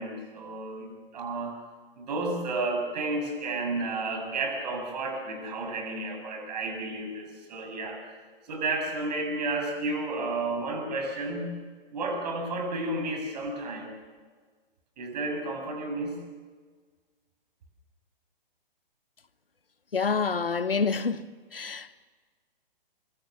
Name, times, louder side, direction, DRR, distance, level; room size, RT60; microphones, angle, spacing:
voice 1, 0.0-1.6 2.0-8.1 8.5-11.5 11.9-13.9 15.0-16.2, right 2 dB, 45° right, 6.9 m, -32 dB
voice 2, 19.9-21.2 21.5-22.0, left 5 dB, 75° left, 1.2 m, -27 dB
24.5 x 24.0 x 7.1 m
figure-of-eight pair, 125°, 29 cm